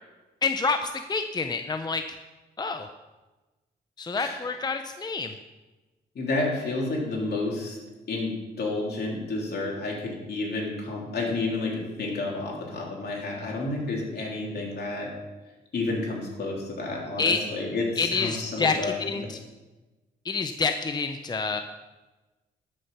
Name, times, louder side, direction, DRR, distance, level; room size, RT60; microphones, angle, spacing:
voice 1, 0.4-2.0 2.6-2.9 4.0-5.3 17.2-17.4 18.0-19.4 20.2-21.6, left 4 dB, 25° left, 7 dB, 0.6 m, -27 dB
voice 2, 4.2-4.5 6.2-7.8 8.1-15.1 15.7-19.3, left 2 dB, 65° left, -2 dB, 3.4 m, -30 dB
12.0 x 6.4 x 6.0 m, 1.1 s
cardioid pair, 95°, 18 cm